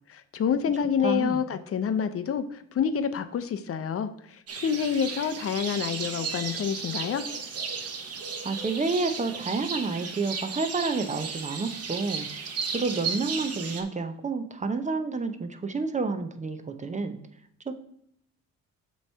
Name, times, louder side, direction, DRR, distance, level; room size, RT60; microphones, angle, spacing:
voice 1, 0.1-7.2, left 7 dB, 50° left, 11 dB, 0.6 m, -28 dB
voice 2, 1.0-1.4 8.4-12.3 12.6-17.2 17.7-17.8, right 4 dB, 25° right, 8 dB, 0.7 m, -29 dB
sound 1, 4.5-13.8, right 5 dB, 55° right, 1.1 m, -35 dB
7.5 x 3.2 x 5.4 m, 0.72 s
cardioid pair, 90°, 30 cm